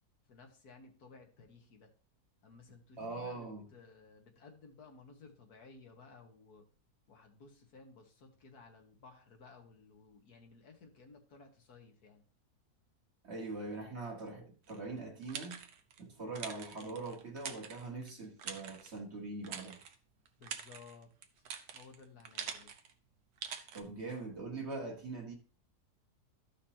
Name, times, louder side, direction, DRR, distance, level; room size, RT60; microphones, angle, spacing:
voice 1, 0.3-1.9 2.4-6.6 7.1-12.2 20.4-21.1 21.4-22.7, left 4 dB, 80° left, 1.8 m, -57 dB
voice 2, 3.0-3.7 13.2-15.6 16.0-19.8 23.7-25.4, right 3 dB, 45° right, 1.6 m, -42 dB
sound 1, 14.7-16.0 16.4-18.1 18.4-19.0 19.4-20.0 20.3-22.9 23.4-23.8, right 7 dB, 90° right, 1.4 m, -45 dB
13.5 x 5.2 x 2.8 m
omnidirectional pair, 1.6 m